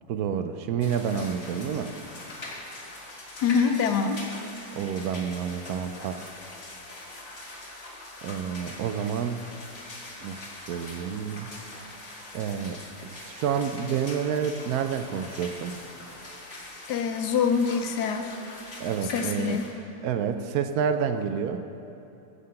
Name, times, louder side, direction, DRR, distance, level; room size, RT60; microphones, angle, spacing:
voice 1, 0.1-1.9 4.8-6.2 8.2-9.4 10.2-11.5 12.3-15.8 18.8-19.6 20.0-21.6, right 7 dB, 70° right, 9 dB, 1.0 m, -29 dB
sound 1, 0.8-19.7, left 2 dB, 40° left, 1.6 m, -42 dB
voice 2, 3.4-4.2 16.9-18.3 19.1-19.7, left 6 dB, 80° left, 7 dB, 1.3 m, -25 dB
9.3 x 6.7 x 7.7 m, 2.9 s
omnidirectional pair, 1.7 m